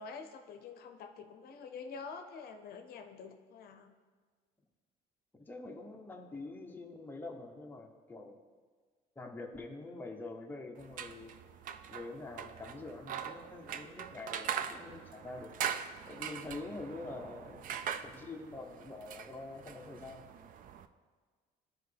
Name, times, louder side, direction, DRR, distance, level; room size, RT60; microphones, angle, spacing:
voice 1, 0.0-3.9, left 5 dB, 65° left, 7 dB, 0.6 m, -47 dB
voice 2, 5.4-8.4 9.2-11.3 11.9-15.5 16.1-20.3, left 2 dB, 10° left, 2 dB, 0.7 m, -45 dB
sound 1, 10.8-20.9, right 8 dB, 55° right, 0.4 m, -42 dB
11.5 x 4.7 x 3.4 m, 1.5 s
cardioid pair, 110°, 17 cm